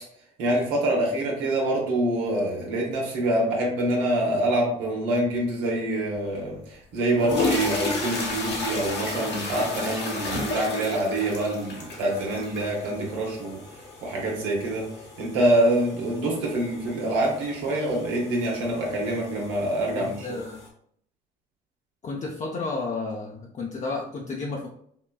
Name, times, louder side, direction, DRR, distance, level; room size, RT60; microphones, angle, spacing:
voice 1, 0.4-13.6 14.0-14.9 15.2-20.1, right 1 dB, 85° right, -2 dB, 0.8 m, -25 dB
sound 1, 6.3-6.4 7.0-20.7, left 3 dB, 60° left, 1.0 m, -34 dB
voice 2, 19.9-20.7 22.0-24.7, left 3 dB, 40° left, -2 dB, 0.5 m, -32 dB
3.6 x 2.2 x 2.3 m, 0.66 s
hypercardioid pair, 55°, 20 cm